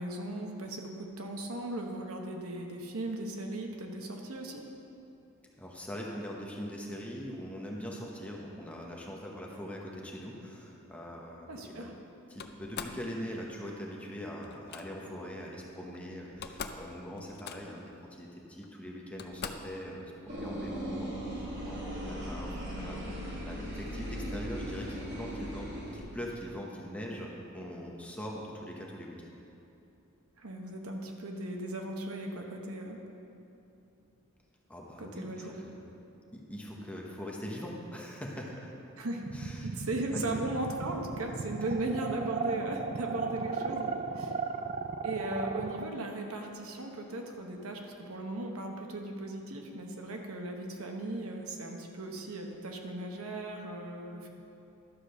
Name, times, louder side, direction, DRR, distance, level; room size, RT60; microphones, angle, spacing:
voice 1, 0.0-4.6 11.5-11.9 30.4-33.0 35.0-35.6 39.0-39.3 39.6-44.4 45.0-54.3, right 2 dB, 75° right, 2 dB, 1.0 m, -37 dB
voice 2, 5.6-11.9 12.3-29.3 34.7-35.9 36.3-38.7 39.3-39.7 40.1-40.4, equal, 5° left, -2 dB, 1.0 m, -42 dB
Slam, 12.4-13.0 14.4-14.8 15.9-16.0 16.3-16.9 17.2-17.9 18.6-18.7 19.2-19.8, left 6 dB, 45° left, 0.5 m, -42 dB
sound 1, 20.3-26.0, equal, 55° right, 2.1 m, -38 dB
sound 2, 39.2-45.9, right 5 dB, 35° right, 0.3 m, -35 dB
11.5 x 5.0 x 6.4 m, 2.8 s
head